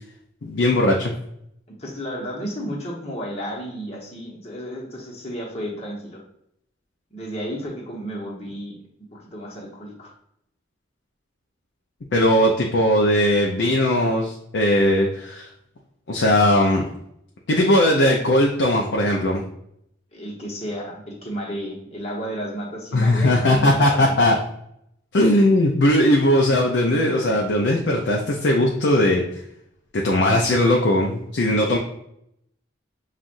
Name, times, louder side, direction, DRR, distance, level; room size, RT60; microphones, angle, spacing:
voice 1, 0.4-1.1 12.1-15.5 16.1-16.8 17.5-19.4 22.9-24.4 25.1-29.2 29.9-31.8, left 1 dB, 70° left, 0 dB, 0.5 m, -19 dB
voice 2, 1.7-6.2 7.1-8.8 9.1-10.1 20.1-24.1, equal, 35° left, -2 dB, 1.0 m, -32 dB
7.2 x 2.5 x 2.6 m, 0.75 s
head